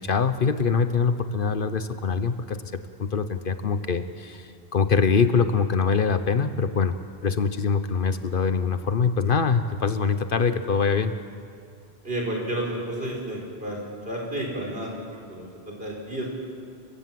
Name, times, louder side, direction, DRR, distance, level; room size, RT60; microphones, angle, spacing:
voice 1, 0.0-2.6 3.0-11.1, left 5 dB, 55° left, 11 dB, 1.0 m, -24 dB
voice 2, 12.0-13.8 14.1-16.3, right 1 dB, 60° right, -1 dB, 5.1 m, -31 dB
29.5 x 16.0 x 7.7 m, 2.3 s
omnidirectional pair, 1.1 m